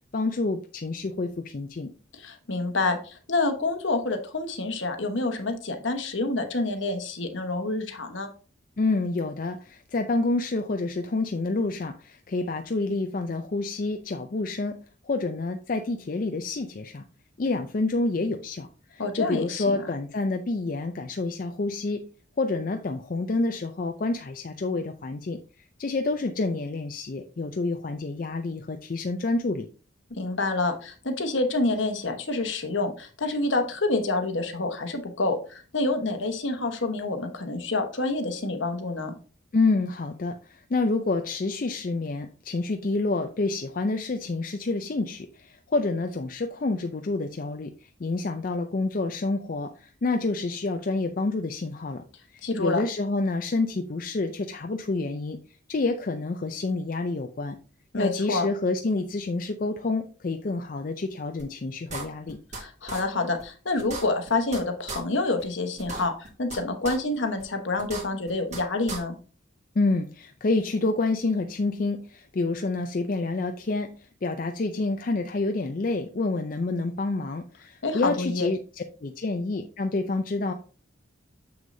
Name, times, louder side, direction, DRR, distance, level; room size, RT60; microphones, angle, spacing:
voice 1, 0.1-1.9 8.8-14.8 15.0-17.0 17.4-22.0 22.4-25.4 25.8-29.7 39.5-52.0 52.3-55.4 55.7-57.6 58.0-62.4 69.8-80.5, left 3 dB, 45° left, 6 dB, 0.4 m, -28 dB
voice 2, 2.2-8.3 19.0-19.9 30.1-39.1 52.4-52.8 57.9-58.5 62.5-69.2 77.8-78.5, left 2 dB, 75° left, 6 dB, 1.1 m, -28 dB
sound 1, 61.4-61.5 61.9-62.6 62.9-63.0 63.4-63.5 63.8-64.6 64.9-65.0 65.4-65.5 65.8-66.6 66.9-67.0 67.4-67.5 67.8-68.6 68.9-69.0, right 3 dB, 35° right, 1.5 m, -35 dB
7.1 x 6.2 x 2.6 m, 0.37 s
head